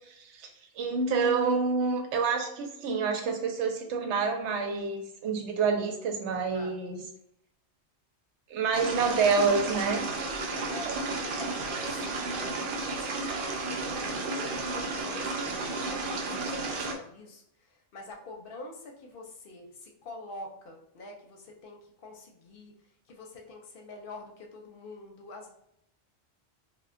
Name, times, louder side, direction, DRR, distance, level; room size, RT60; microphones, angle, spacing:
voice 1, 0.2-0.5 0.8-7.0 8.5-10.1, right 5 dB, 85° right, 4 dB, 0.9 m, -28 dB
voice 2, 6.3-6.9 10.2-22.7 23.1-25.5, left 2 dB, 60° left, 1 dB, 0.7 m, -46 dB
sound 1, 8.7-16.9, right 3 dB, 60° right, 0.7 m, -33 dB
2.1 x 2.1 x 3.6 m, 0.77 s
omnidirectional pair, 1.1 m